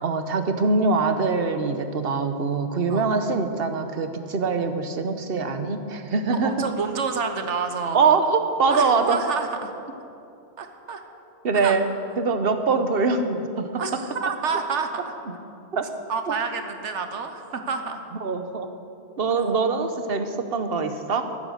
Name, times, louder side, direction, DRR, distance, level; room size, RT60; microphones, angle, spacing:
voice 1, 0.0-6.5 7.9-9.2 11.4-13.8 15.7-15.9 16.3-16.4 18.2-18.7 19.2-21.3, right 4 dB, 60° right, 8 dB, 1.1 m, -23 dB
voice 2, 6.4-8.0 8.7-9.7 10.6-11.0 11.5-11.8 13.8-15.1 16.1-18.0, right 5 dB, 90° right, 7 dB, 1.4 m, -28 dB
15.5 x 9.0 x 6.5 m, 2.7 s
omnidirectional pair, 1.2 m